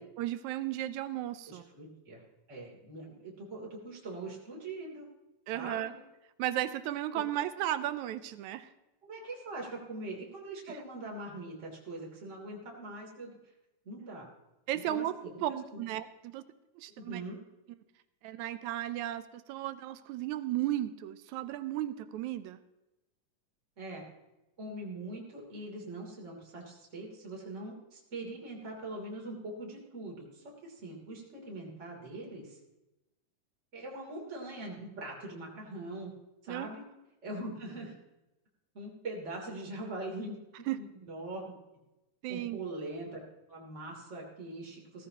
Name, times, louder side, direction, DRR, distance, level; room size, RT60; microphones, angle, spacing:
voice 1, 0.0-1.6 5.5-5.9 6.4-8.7 10.7-10.8 14.7-16.4 16.8-17.2 18.2-22.6 36.5-36.7 40.7-40.8 42.2-42.6, right 13 dB, 80° right, 12 dB, 1.9 m, -35 dB
voice 2, 1.5-2.2 2.5-5.1 5.5-5.9 9.0-13.4 13.8-14.3 14.9-15.8 17.0-17.4 23.8-24.0 24.6-32.6 33.7-36.1 36.4-36.8 37.2-37.9 38.7-40.4 40.8-41.6 42.3-43.2 43.5-45.1, right 2 dB, 25° right, -3 dB, 3.1 m, -42 dB
16.5 x 15.0 x 3.0 m, 0.97 s
omnidirectional pair, 3.6 m